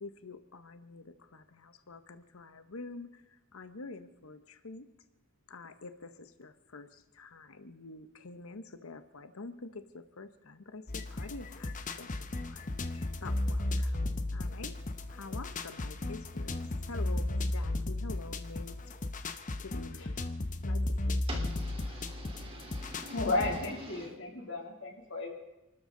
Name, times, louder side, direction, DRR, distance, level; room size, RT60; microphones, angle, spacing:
voice 1, 0.0-4.9 5.5-11.7 12.0-14.0 14.3-14.8 15.1-19.0 19.6-20.3 20.6-21.3, left 3 dB, 85° left, 10 dB, 0.9 m, -47 dB
sound 1, 10.9-23.7, left 2 dB, 40° left, 0.9 m, -35 dB
voice 2, 21.3-24.1, equal, 25° right, 0 dB, 3.4 m, -46 dB
voice 3, 23.1-25.3, left 2 dB, 65° left, 1 dB, 2.9 m, -34 dB
29.0 x 13.0 x 3.9 m, 0.98 s
head